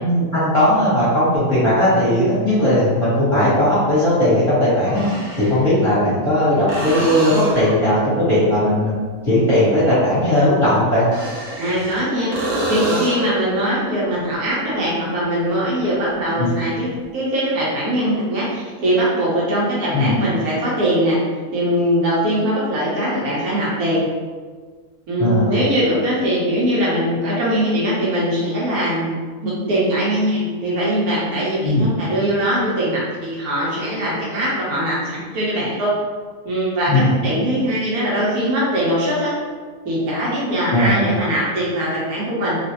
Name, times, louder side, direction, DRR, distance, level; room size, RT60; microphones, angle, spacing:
voice 1, 0.0-5.0 5.4-8.9 9.2-11.0 16.4-16.5 19.9-20.1 25.2-25.5 31.6-31.9 36.9-37.1 40.7-41.1, left 1 dB, 20° left, -12 dB, 1.1 m, -17 dB
sound 1, 1.3-1.4 3.5-3.6 4.8-5.6 6.7-7.8 11.0-12.0 12.3-13.4 17.0-17.1, right 1 dB, 45° right, 0.8 m, -25 dB
voice 2, 11.6-12.3 12.7-21.2 21.5-24.0 25.1-29.2 29.4-36.0 36.4-39.3 39.8-42.6, equal, 75° right, -7 dB, 1.4 m, -21 dB
3.1 x 2.5 x 2.9 m, 1.5 s
omnidirectional pair, 1.6 m